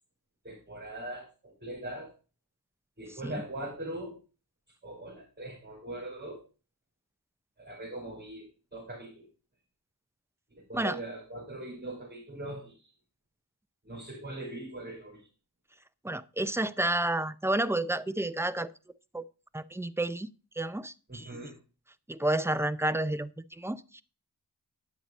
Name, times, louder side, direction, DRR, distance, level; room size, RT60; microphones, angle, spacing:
voice 1, 0.4-2.1 3.0-4.2 4.8-6.4 7.6-9.3 10.5-12.9 13.8-15.3 21.1-21.6, right 1 dB, 25° right, 5.4 m, -41 dB
voice 2, 16.0-18.7 19.1-19.2 19.5-20.3 20.6-21.3 22.1-24.0, right 1 dB, 5° right, 0.5 m, -30 dB
9.6 x 7.8 x 4.0 m
wide cardioid pair, 45°, 41 cm